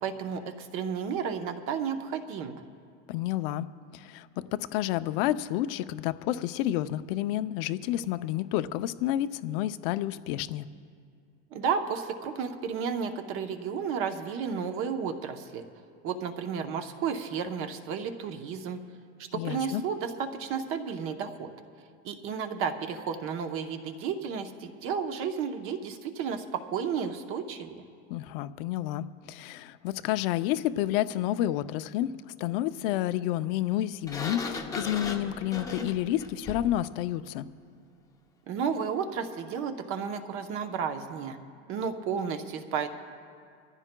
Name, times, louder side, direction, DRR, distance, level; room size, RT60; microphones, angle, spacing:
voice 1, 0.0-2.6 11.5-15.6 16.0-18.8 19.2-21.5 22.0-27.8 38.5-41.4 41.7-42.9, right 6 dB, 40° right, 7 dB, 0.9 m, -32 dB
voice 2, 3.1-3.7 3.9-10.7 19.3-19.8 28.1-32.1 32.4-37.5, left 13 dB, 55° left, 12 dB, 0.5 m, -30 dB
Sliding door, 34.1-36.8, left 3 dB, 10° left, 0.6 m, -37 dB
25.5 x 14.5 x 2.2 m, 2.3 s
supercardioid pair, 160°, 35 cm